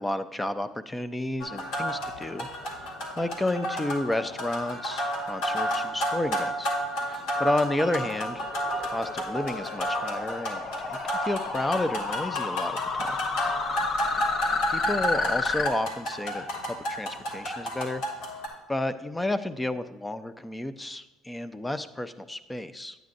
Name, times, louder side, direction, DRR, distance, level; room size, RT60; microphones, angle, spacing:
voice 1, 0.0-6.7 7.1-8.5 8.8-10.6 10.9-13.2 14.7-18.0 18.7-23.0, left 1 dB, 10° left, 11 dB, 0.5 m, -31 dB
sound 1, 1.4-18.5, equal, 80° left, 2.1 m, -32 dB
sound 2, 8.1-15.7, left 4 dB, 45° left, 0.9 m, -31 dB
9.4 x 9.1 x 2.6 m, 1.0 s
hypercardioid pair, 75°, 0 cm